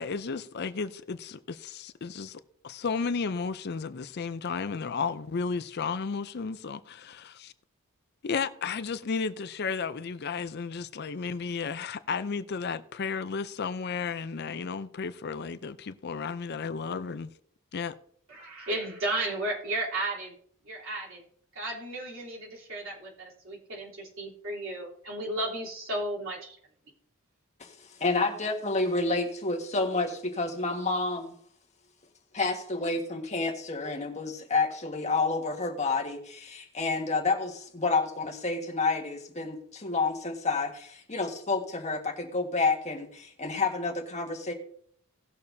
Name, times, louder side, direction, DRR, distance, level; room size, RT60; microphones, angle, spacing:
voice 1, 0.0-7.5 8.2-17.3 17.7-17.9, left 5 dB, 50° left, 0.5 m, -33 dB
voice 2, 18.3-20.3 20.6-21.2 21.5-26.6, right 1 dB, 65° right, 3.4 m, -34 dB
voice 3, 27.6-31.3 32.3-44.5, left 3 dB, 30° left, 1.6 m, -29 dB
18.0 x 6.8 x 2.7 m
head